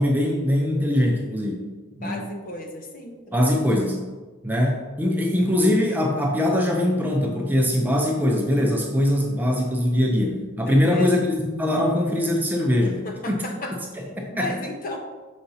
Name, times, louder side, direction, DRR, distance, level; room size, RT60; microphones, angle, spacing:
voice 1, 0.0-1.7 2.0-2.3 3.3-4.0 4.4-13.0 13.3-13.4 14.2-14.5, left 1 dB, 10° right, 0 dB, 0.6 m, -22 dB
voice 2, 1.9-3.6 10.7-11.2 12.8-13.8 14.3-15.0, left 1 dB, 40° left, 2 dB, 0.7 m, -34 dB
6.7 x 5.0 x 2.8 m, 1.3 s
head